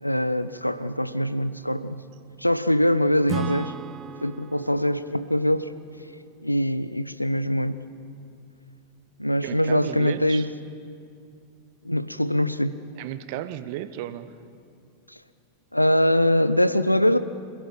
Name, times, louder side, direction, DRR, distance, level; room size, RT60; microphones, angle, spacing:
voice 1, 0.0-2.0 2.4-3.7 4.2-5.7 6.4-7.8 9.2-10.5 11.8-12.8 15.1-15.2 15.7-17.2, equal, 90° left, 14 dB, 0.7 m, -23 dB
Acoustic guitar / Strum, 3.3-6.9, right 7 dB, 25° right, 0.6 m, -37 dB
voice 2, 9.4-10.5 12.9-14.4, right 12 dB, 50° right, 13 dB, 1.0 m, -34 dB
27.0 x 17.0 x 5.8 m, 2.3 s
figure-of-eight pair, 90°, 0 cm